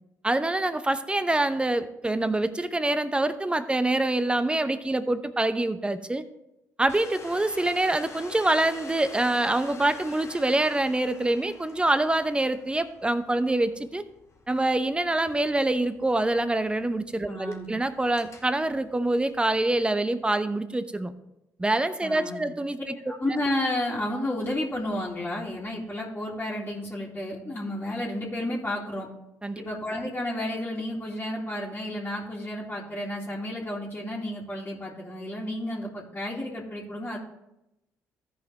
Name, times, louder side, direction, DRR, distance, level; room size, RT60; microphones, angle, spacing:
voice 1, 0.2-6.2 6.8-14.0 14.5-21.1 21.6-22.9 29.4-29.6, right 2 dB, 15° right, 12 dB, 0.8 m, -25 dB
Domestic sounds home sounds, 6.9-20.0, left 3 dB, 40° left, 2.0 m, -48 dB
voice 2, 17.2-17.7 22.0-22.4 23.1-29.1 29.6-37.2, left 1 dB, 20° left, -7 dB, 2.4 m, -31 dB
14.5 x 5.2 x 3.4 m, 0.90 s
hypercardioid pair, 55°, 7 cm